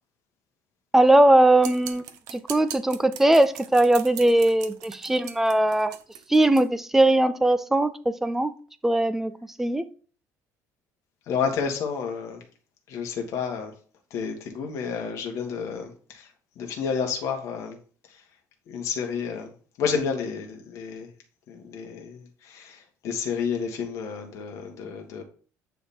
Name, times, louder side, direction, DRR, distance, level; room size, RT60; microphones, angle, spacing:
voice 1, 0.9-2.0 2.3-6.0 6.3-8.5 8.8-9.3 9.6-9.8, right 1 dB, 5° right, 0.4 m, -20 dB
sound 1, 1.6-6.6, right 10 dB, 75° right, 0.8 m, -40 dB
voice 2, 11.3-12.4 12.9-13.7 14.1-16.3 16.6-17.8 18.1-18.2 18.7-19.5 19.8-21.1 21.5-25.2, left 6 dB, 55° left, 1.7 m, -30 dB
9.2 x 3.6 x 4.3 m
cardioid pair, 170°, 6 cm